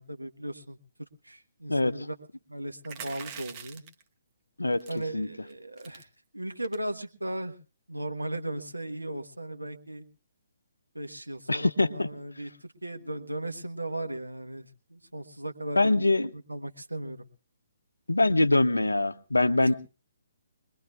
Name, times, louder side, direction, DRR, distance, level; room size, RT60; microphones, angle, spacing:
voice 1, 0.0-2.1 2.5-3.8 4.9-6.1 6.3-7.5 7.9-10.0 10.9-16.0 16.5-17.2, right 1 dB, 85° right, 1.2 m, -37 dB
voice 2, 1.7-2.1 4.6-5.3 11.5-12.1 15.8-16.3 18.1-19.7, left 2 dB, 80° left, 0.7 m, -24 dB
sound 1, 2.8-4.0 4.8-5.1 5.5-5.6 5.8-6.0 6.6-6.9, right 7 dB, 25° right, 1.1 m, -43 dB
22.5 x 21.0 x 2.4 m
figure-of-eight pair, 135°, 0 cm